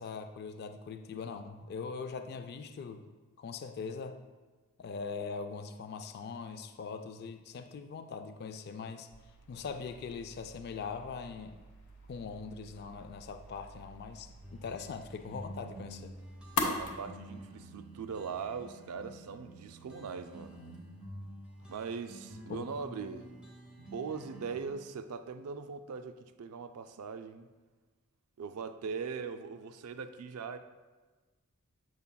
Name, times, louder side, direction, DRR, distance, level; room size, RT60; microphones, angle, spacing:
voice 1, 0.0-3.0 3.4-4.2 4.8-9.1 9.5-11.6 12.1-16.1 21.6-21.7 22.5-22.7, left 5 dB, 45° left, 8 dB, 0.3 m, -41 dB
sound 1, 9.1-16.9, left 3 dB, 75° left, 0.9 m, -42 dB
sound 2, 14.4-24.7, right 1 dB, 5° right, 0.8 m, -49 dB
voice 2, 16.6-20.6 21.7-23.3 23.8-27.5 28.4-30.6, right 5 dB, 80° right, 10 dB, 0.4 m, -41 dB
6.9 x 6.3 x 2.2 m, 1.3 s
head